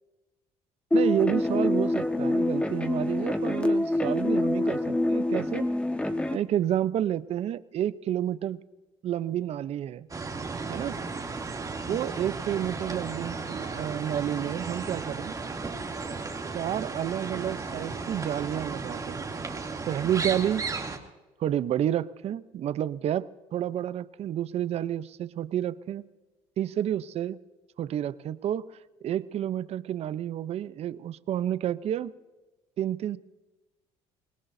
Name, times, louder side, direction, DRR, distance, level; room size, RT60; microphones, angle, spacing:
sound 1, 0.9-6.4, left 1 dB, 10° left, 1.4 m, -26 dB
voice 1, 0.9-5.7 6.3-8.6 9.0-10.1 10.7-11.0 11.9-15.3 16.5-19.2 19.9-20.7 21.4-26.1 26.6-27.4 27.8-28.7 29.0-32.1 32.8-33.2, right 11 dB, 55° right, 16 dB, 0.7 m, -30 dB
sound 2, 10.1-21.0, right 4 dB, 25° right, 2.7 m, -35 dB
25.5 x 20.5 x 2.7 m, 1.1 s
supercardioid pair, 85°, 13 cm